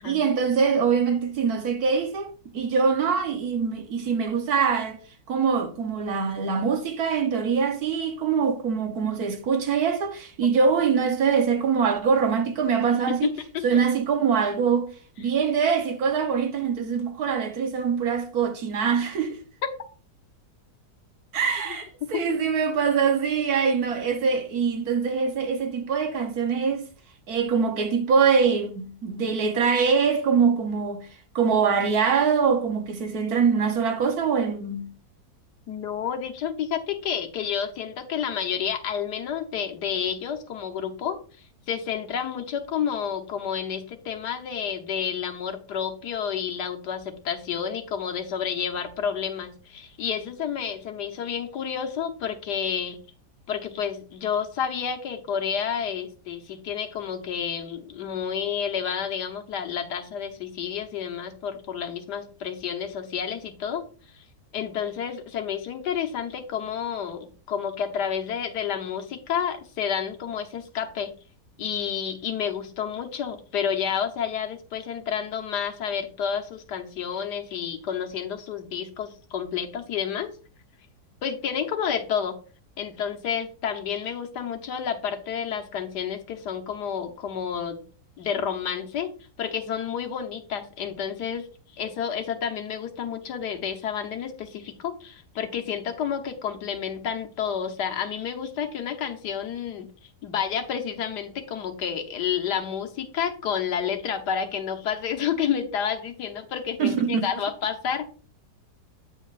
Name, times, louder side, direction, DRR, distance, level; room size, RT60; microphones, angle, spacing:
voice 1, 0.0-5.0 5.3-13.3 13.6-14.9 15.2-19.4 21.3-26.8 27.3-31.1 31.3-34.9 106.8-107.3, right 6 dB, 65° right, 1.5 m, -23 dB
voice 2, 13.1-13.6 19.6-19.7 21.7-22.2 35.7-41.2 41.7-53.0 53.5-63.8 64.1-64.2 64.5-71.1 71.6-80.3 81.2-82.4 82.8-87.8 88.2-89.1 89.4-91.5 91.8-99.9 100.2-108.1, left 8 dB, 85° left, 1.6 m, -30 dB
8.9 x 7.3 x 2.5 m
omnidirectional pair, 1.7 m